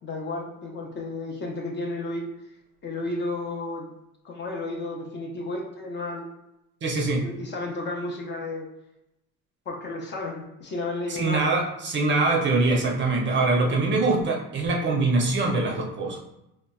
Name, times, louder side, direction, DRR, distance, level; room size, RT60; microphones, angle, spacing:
voice 1, 0.0-2.3 2.8-3.9 4.2-6.3 7.2-8.7 9.7-11.5 13.4-13.8, left 2 dB, 30° left, 0 dB, 0.5 m, -32 dB
voice 2, 6.8-7.2 11.1-16.2, right 3 dB, 35° right, 0 dB, 0.5 m, -23 dB
4.0 x 2.0 x 2.2 m, 0.87 s
cardioid pair, 140°, 34 cm